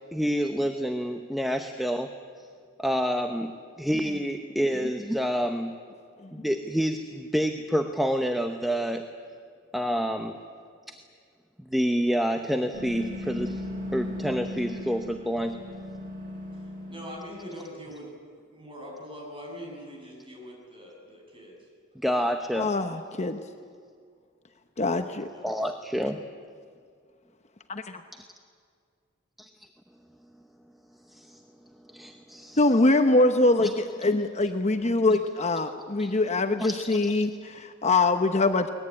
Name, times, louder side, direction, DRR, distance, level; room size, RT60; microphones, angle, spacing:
voice 1, 0.1-2.1 2.8-3.5 3.8-5.7 6.3-9.1 9.7-10.3 10.9-11.0 11.6-13.6 13.9-15.6 22.0-22.7 25.4-26.2 31.1-31.4 31.9-32.6 33.6-33.7 36.0-36.1 36.6-37.1, equal, ahead, 5 dB, 0.9 m, -28 dB
sound 1, 12.7-17.3, left 1 dB, 45° right, 5.5 m, -37 dB
voice 2, 16.9-18.1 18.5-21.6 25.3-25.5, equal, 25° right, -1 dB, 7.5 m, -42 dB
voice 3, 22.6-23.4 24.8-25.3 27.7-28.0 32.6-38.7, left 2 dB, 35° left, 7 dB, 1.0 m, -23 dB
22.0 x 20.0 x 9.8 m, 2.1 s
head